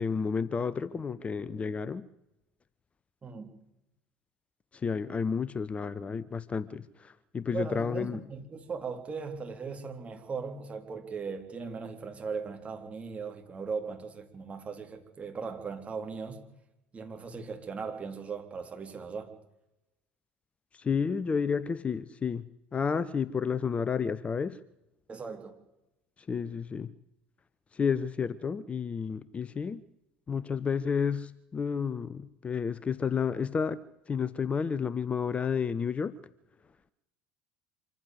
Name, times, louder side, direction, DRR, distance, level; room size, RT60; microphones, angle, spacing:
voice 1, 0.0-2.1 4.7-8.2 20.7-22.4 22.7-24.6 26.3-26.9 27.7-29.8 30.3-33.8 34.1-36.1, left 6 dB, 25° left, 17 dB, 0.7 m, -31 dB
voice 2, 3.2-3.5 7.5-16.5 16.9-19.3 25.1-25.6, right 5 dB, 25° right, 4 dB, 3.7 m, -38 dB
25.5 x 14.5 x 8.0 m, 0.91 s
figure-of-eight pair, 70°, 5 cm